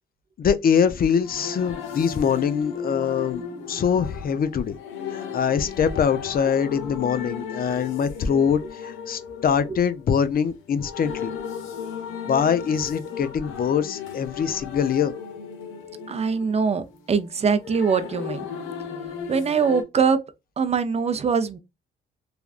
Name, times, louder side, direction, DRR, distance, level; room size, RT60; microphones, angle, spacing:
voice 1, 0.4-4.8 5.1-11.3 12.3-15.1, left 7 dB, 45° left, 0.6 m, -23 dB
sound 1, 0.7-19.8, left 7 dB, 90° left, 0.9 m, -36 dB
voice 2, 16.1-18.5 19.3-20.2 20.6-21.6, right 5 dB, 30° right, 0.5 m, -23 dB
3.4 x 2.3 x 2.4 m
cardioid pair, 90°, 20 cm